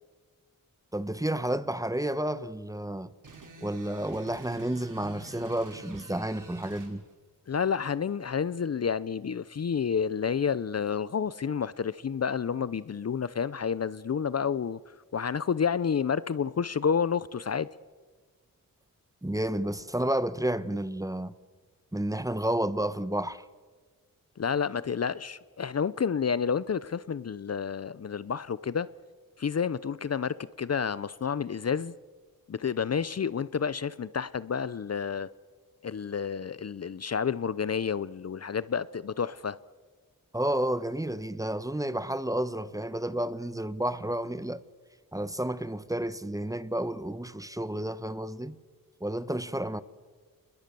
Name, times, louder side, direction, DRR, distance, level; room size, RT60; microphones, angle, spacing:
voice 1, 0.9-3.1 3.6-7.0 19.2-21.3 21.9-23.4 40.3-44.6 45.1-48.6 49.0-49.8, right 1 dB, 10° right, 1.1 m, -31 dB
sound 1, 3.2-6.9, right 3 dB, 65° right, 5.1 m, -48 dB
voice 2, 7.5-14.8 15.1-17.7 24.4-28.9 29.4-31.9 32.5-35.3 35.8-39.6, left 6 dB, 45° left, 0.7 m, -30 dB
28.5 x 21.5 x 6.9 m
cardioid pair, 65°, 34 cm